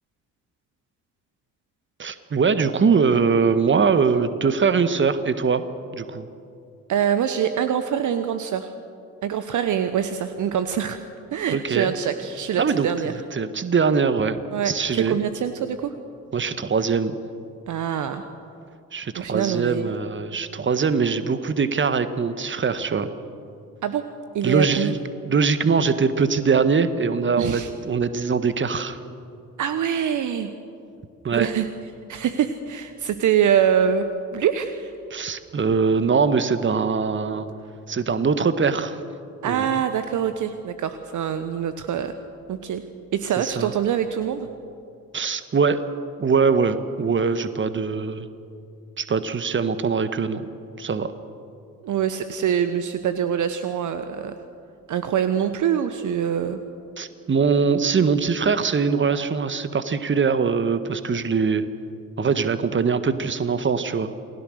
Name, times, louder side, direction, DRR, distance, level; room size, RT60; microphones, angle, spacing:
voice 1, 2.0-5.6 5.9-6.3 11.5-11.9 12.6-12.9 13.3-14.4 14.6-15.2 16.3-17.2 18.9-23.1 24.4-25.0 25.2-29.0 31.2-31.5 35.1-37.5 37.9-39.0 39.4-39.7 43.4-43.7 45.1-45.8 46.2-48.3 49.0-50.5 50.8-51.1 57.0-61.6 62.2-64.1, right 5 dB, 30° right, 11 dB, 1.6 m, -22 dB
voice 2, 6.9-8.7 9.2-11.0 11.3-13.1 14.5-15.9 17.7-18.2 19.2-19.9 23.8-24.1 24.3-24.9 27.4-27.7 29.6-30.5 31.3-31.7 32.1-34.9 39.4-42.2 42.5-42.8 43.1-44.5 51.8-54.3 54.9-56.6, right 8 dB, 45° right, 10 dB, 1.2 m, -24 dB
28.5 x 20.5 x 6.6 m, 2.5 s
figure-of-eight pair, 50°, 41 cm